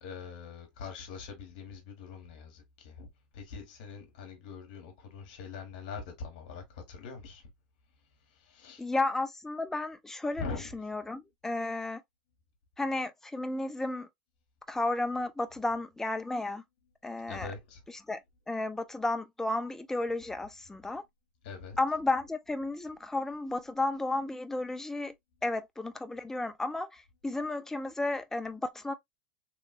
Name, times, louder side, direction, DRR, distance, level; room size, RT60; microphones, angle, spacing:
voice 1, 0.0-3.1 3.3-7.5 8.0-8.9 10.4-10.8 17.3-17.8 21.4-21.8, left 5 dB, 65° left, 1.6 m, -43 dB
voice 2, 8.8-12.0 12.8-14.1 14.7-16.6 17.0-17.5 18.1-18.2 18.5-21.0 21.8-25.1 25.4-28.9, left 2 dB, 10° left, 0.5 m, -33 dB
3.3 x 3.1 x 2.4 m
hypercardioid pair, 90°, 5 cm